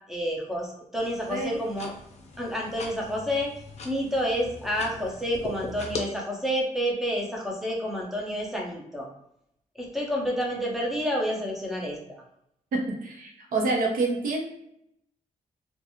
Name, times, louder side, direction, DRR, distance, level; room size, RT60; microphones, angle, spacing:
voice 1, 0.1-1.9 2.4-3.5 3.8-9.1 9.8-12.2, equal, ahead, -2 dB, 0.6 m, -29 dB
sound 1, 0.9-6.0, left 3 dB, 50° left, 0.5 m, -40 dB
voice 2, 12.7-14.5, right 3 dB, 80° right, 1 dB, 0.7 m, -27 dB
2.4 x 2.2 x 2.9 m, 0.77 s
wide cardioid pair, 145°, 14 cm